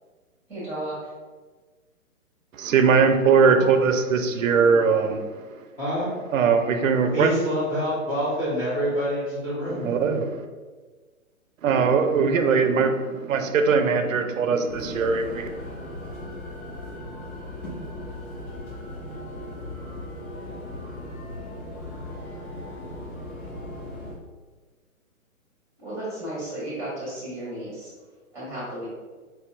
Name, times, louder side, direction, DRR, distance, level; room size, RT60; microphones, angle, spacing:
voice 1, 0.5-0.9 3.6-3.7 25.8-27.9 28.3-28.9, right 1 dB, 5° right, -6 dB, 1.1 m, -33 dB
voice 2, 2.5-5.2 6.3-7.3 9.7-10.4 11.6-15.5, right 5 dB, 65° right, 7 dB, 0.5 m, -20 dB
voice 3, 5.8-6.1 7.1-10.0, equal, 15° left, -10 dB, 0.7 m, -26 dB
sound 1, 14.7-24.1, left 1 dB, 75° left, 1.2 m, -37 dB
4.2 x 2.7 x 2.4 m, 1.4 s
figure-of-eight pair, 130°, 43 cm